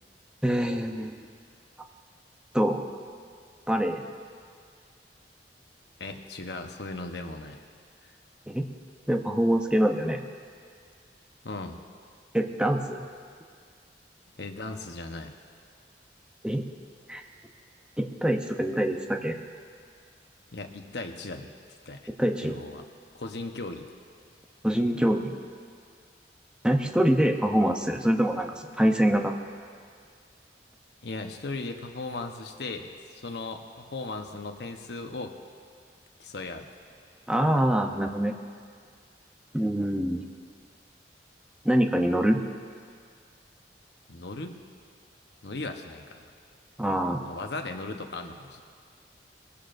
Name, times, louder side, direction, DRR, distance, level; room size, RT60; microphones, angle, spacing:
voice 1, 0.4-1.2 2.5-2.8 3.7-4.0 8.5-8.7 9.1-10.2 12.3-13.1 16.4-16.7 17.1-17.2 18.0-19.4 22.2-22.6 24.6-25.3 26.6-29.3 37.3-38.3 39.5-40.2 41.6-42.4 46.8-47.2, right 1 dB, 5° right, 4 dB, 0.7 m, -25 dB
voice 2, 6.0-7.6 8.0-8.1 11.4-11.8 14.4-15.3 20.5-21.5 21.9-22.1 22.4-22.8 23.1-23.9 31.0-35.3 36.2-36.7 44.1-44.6 45.4-46.3 47.2-48.6, left 2 dB, 70° left, 5 dB, 1.0 m, -37 dB
21.0 x 15.5 x 2.6 m, 2.1 s
head